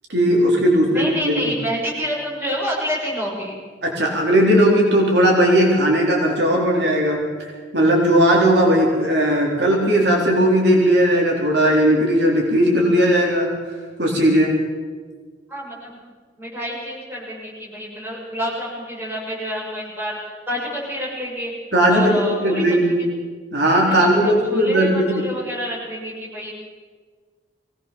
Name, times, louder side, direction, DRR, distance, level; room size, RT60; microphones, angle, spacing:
voice 1, 0.1-1.5 3.8-13.5 14.0-14.5 21.7-23.0 23.5-25.2, equal, 65° right, -1 dB, 4.0 m, -17 dB
voice 2, 0.9-3.5 15.5-16.0 16.4-21.5 21.9-23.1 23.9-26.5, equal, 10° right, -5 dB, 7.1 m, -28 dB
23.0 x 18.0 x 7.1 m, 1.5 s
head